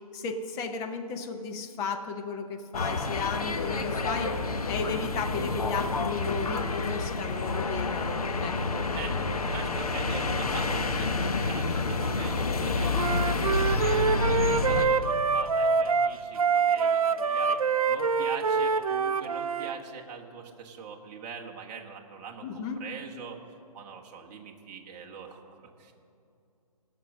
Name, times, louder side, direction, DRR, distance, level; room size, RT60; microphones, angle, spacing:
voice 1, 0.1-4.3 4.7-8.9 22.4-22.8, left 5 dB, 15° left, 4 dB, 0.8 m, -34 dB
sound 1, 2.7-14.9, left 3 dB, 70° left, 1.2 m, -29 dB
voice 2, 4.2-4.8 8.6-9.2 9.5-23.4 23.7-25.9, right 6 dB, 25° right, 0 dB, 1.3 m, -43 dB
Wind instrument woodwind instrument, 12.9-19.8, right 5 dB, 65° right, 0.6 m, -25 dB
17.5 x 6.1 x 6.5 m, 2.6 s
figure-of-eight pair, 140°, 20 cm